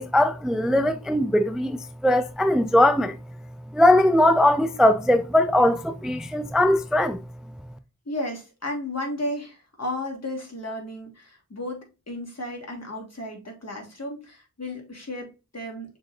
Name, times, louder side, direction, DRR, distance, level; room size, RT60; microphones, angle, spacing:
voice 1, 0.0-3.2 3.7-7.2, left 1 dB, ahead, 0.3 m, -20 dB
voice 2, 8.1-16.0, left 1 dB, 50° left, 1.7 m, -34 dB
6.4 x 3.2 x 2.4 m
wide cardioid pair, 40°, 32 cm